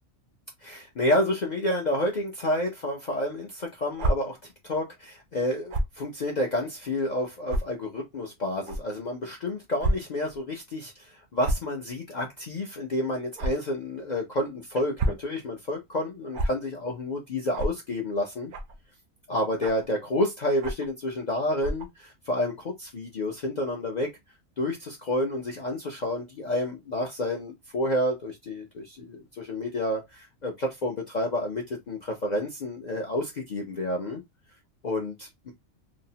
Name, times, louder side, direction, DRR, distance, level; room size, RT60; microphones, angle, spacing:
voice 1, 0.6-4.4 4.6-18.5 19.3-24.1 24.6-34.2 34.8-35.5, left 1 dB, 60° left, 0.4 m, -29 dB
sound 1, 3.9-4.1 5.7-5.9 6.7-6.8 7.5-7.6 8.6-8.8 9.8-9.9 10.3-10.4 11.4-11.7 13.4-13.5 14.7-15.2 16.3-16.5 17.5-17.7 18.5-18.8 19.6-19.9 20.6-20.9 21.6-21.9, right 1 dB, 65° right, 0.5 m, -27 dB
2.6 x 2.0 x 2.7 m
omnidirectional pair, 1.4 m